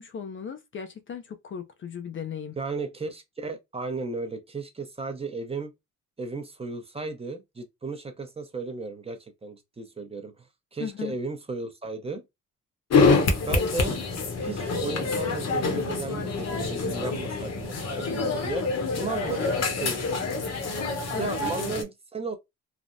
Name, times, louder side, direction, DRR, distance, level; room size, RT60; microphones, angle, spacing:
voice 1, 0.0-2.6 10.8-11.1 21.1-21.4, left 7 dB, 40° left, 0.5 m, -36 dB
voice 2, 2.6-5.7 6.2-10.5 10.7-12.2 13.5-14.0 14.4-18.7 19.0-20.1 21.1-22.4, right 3 dB, 20° right, 0.7 m, -34 dB
sound 1, 12.9-21.8, left 4 dB, 55° left, 1.0 m, -26 dB
3.3 x 2.1 x 2.5 m
cardioid pair, 90°, 30 cm